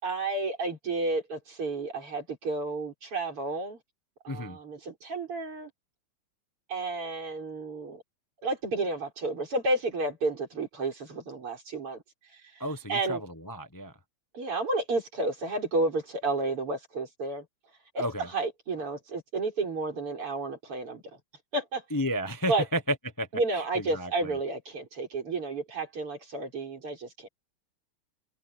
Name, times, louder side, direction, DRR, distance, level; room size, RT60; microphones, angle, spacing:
voice 1, 0.0-3.8 4.2-5.7 6.7-8.0 8.4-12.0 12.5-12.6 12.9-13.2 14.3-17.5 17.9-21.0 21.5-21.8 22.5-22.6 23.3-27.3, right 2 dB, 85° right, 6.5 m, -31 dB
voice 2, 4.3-4.6 12.6-13.9 18.0-18.3 21.9-23.3 23.7-24.3, equal, 15° left, 0.7 m, -32 dB
omnidirectional pair, 2.4 m